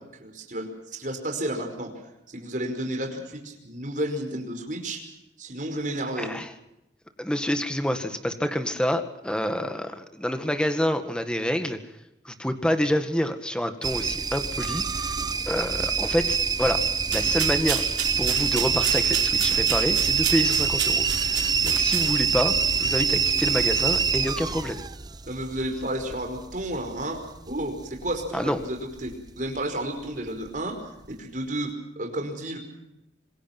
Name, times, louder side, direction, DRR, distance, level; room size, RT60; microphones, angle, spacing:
voice 1, 0.0-5.1 5.4-6.3 25.2-27.2 27.5-30.8 31.1-32.6, right 1 dB, 45° right, 4 dB, 5.3 m, -32 dB
voice 2, 7.2-11.8 12.3-15.2 15.5-16.8 17.1-17.8 18.2-24.8 28.3-28.6, equal, 5° left, 8 dB, 1.9 m, -27 dB
sound 1, 13.8-28.7 29.0-29.6 30.1-30.6 31.0-31.1, right 6 dB, 20° right, 0.7 m, -25 dB
sound 2, 17.0-22.4, right 9 dB, 70° right, 4.6 m, -32 dB
26.5 x 21.5 x 6.1 m, 0.88 s
head